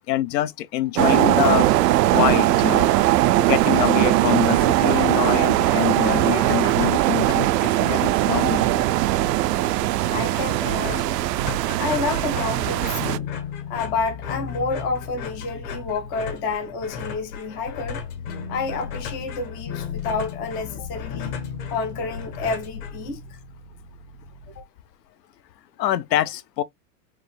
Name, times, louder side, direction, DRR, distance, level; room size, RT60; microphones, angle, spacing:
voice 1, 0.1-1.7 2.1-2.9 3.4-8.7 25.8-26.6, left 14 dB, 85° left, 0.8 m, -25 dB
sound 1, 0.9-13.2, right 15 dB, 75° right, 0.5 m, -20 dB
sound 2, 4.3-5.0 5.3-5.4 5.6-23.4, left 6 dB, 60° left, 1.7 m, -38 dB
voice 2, 10.1-11.3 11.8-13.3 13.7-18.0 18.5-21.4 21.7-23.2 24.6-24.7, left 4 dB, 15° left, 0.3 m, -29 dB
sound 3, 12.6-17.4 17.8-24.6, left 7 dB, 40° left, 0.8 m, -37 dB
4.5 x 2.5 x 3.3 m
supercardioid pair, 150°, 49 cm